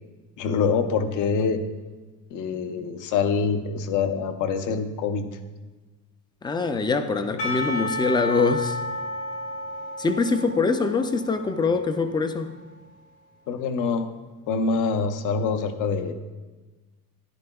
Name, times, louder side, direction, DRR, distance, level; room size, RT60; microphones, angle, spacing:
voice 1, 0.4-1.6 2.3-5.3 13.5-14.1 14.5-16.1, left 5 dB, 60° left, 8 dB, 0.7 m, -25 dB
voice 2, 6.4-8.8 10.0-12.5, left 4 dB, 15° left, 9 dB, 0.3 m, -24 dB
Percussion / Church bell, 7.4-12.4, left 1 dB, 75° left, 2.0 m, -32 dB
13.0 x 10.5 x 2.3 m, 1.2 s
cardioid pair, 160°, 35 cm